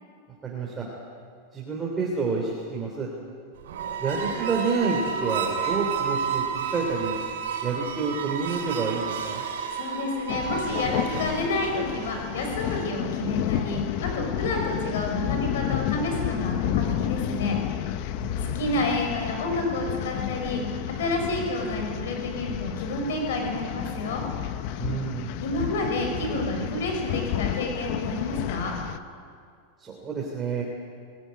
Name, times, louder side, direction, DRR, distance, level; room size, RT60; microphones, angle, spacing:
voice 1, 0.4-0.9 1.5-3.1 4.0-7.1 7.6-9.4 18.1-18.6 24.8-25.3 29.8-30.6, right 4 dB, 15° right, -2 dB, 3.2 m, -29 dB
sound 1, 3.6-13.0, right 7 dB, 85° right, 4.6 m, -31 dB
voice 2, 9.7-17.6 18.4-20.6 21.0-24.2 25.4-28.7, left 2 dB, 80° left, 3 dB, 5.9 m, -29 dB
sound 2, 10.3-29.0, left 11 dB, 50° left, 0.9 m, -31 dB
21.5 x 16.0 x 9.7 m, 2.2 s
supercardioid pair, 150°, 0 cm